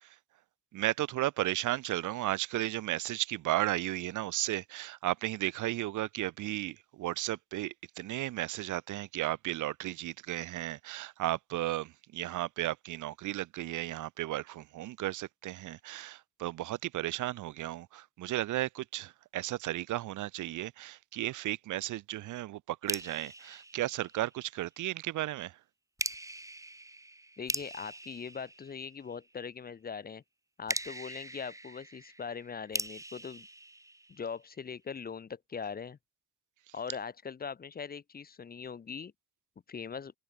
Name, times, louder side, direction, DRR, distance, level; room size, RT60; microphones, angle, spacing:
voice 1, 0.7-25.6, right 15 dB, 80° right, 1.2 m, -34 dB
sound 1, 22.9-24.6 26.0-29.3 30.7-34.6, right 2 dB, 10° right, 2.1 m, -41 dB
voice 2, 27.4-30.2 30.6-33.5 34.1-36.0 36.7-39.1 39.7-40.1, left 6 dB, 30° left, 0.8 m, -41 dB
open air
cardioid pair, 90°, 30 cm